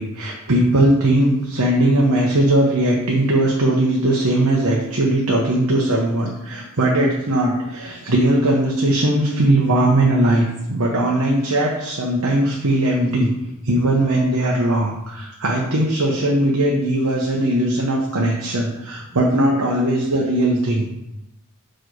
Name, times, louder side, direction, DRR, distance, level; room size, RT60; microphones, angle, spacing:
voice 1, 0.0-13.3 13.6-20.9, right 1 dB, 90° right, -2 dB, 1.1 m, -19 dB
6.3 x 4.5 x 4.7 m, 0.88 s
head